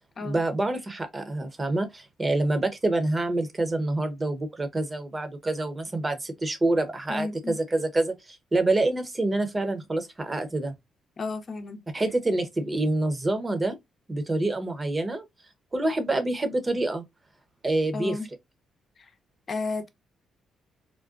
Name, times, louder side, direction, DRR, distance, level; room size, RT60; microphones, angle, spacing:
voice 1, 0.2-10.7 11.9-13.8 14.1-15.3 15.7-17.0 17.6-18.2, right 2 dB, 25° right, 0.9 m, -27 dB
voice 2, 7.1-7.6 11.2-11.8 17.9-18.3 19.5-19.9, left 3 dB, 45° left, 0.7 m, -32 dB
3.8 x 2.2 x 2.4 m
supercardioid pair, 60°, 0 cm